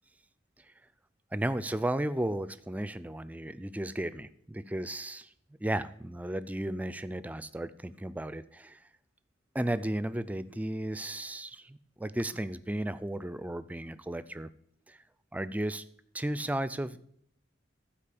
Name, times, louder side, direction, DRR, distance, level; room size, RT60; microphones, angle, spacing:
voice 1, 1.3-5.3 5.6-8.8 9.5-14.5 14.9-15.0 15.3-15.8 16.1-17.0, right 1 dB, 10° right, 15 dB, 0.3 m, -34 dB
12.0 x 4.8 x 8.5 m, 0.72 s
head